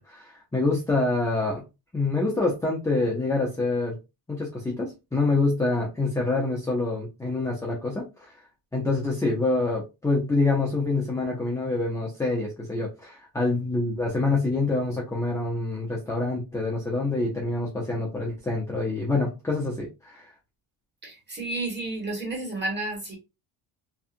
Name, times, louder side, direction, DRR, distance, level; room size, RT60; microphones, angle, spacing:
voice 1, 0.0-1.6 1.9-3.9 4.3-8.3 8.7-20.3, left 3 dB, 5° left, 0.5 m, -26 dB
voice 2, 21.0-23.2, right 2 dB, 25° right, 1.3 m, -31 dB
2.8 x 2.3 x 2.5 m
cardioid pair, 140°, 44 cm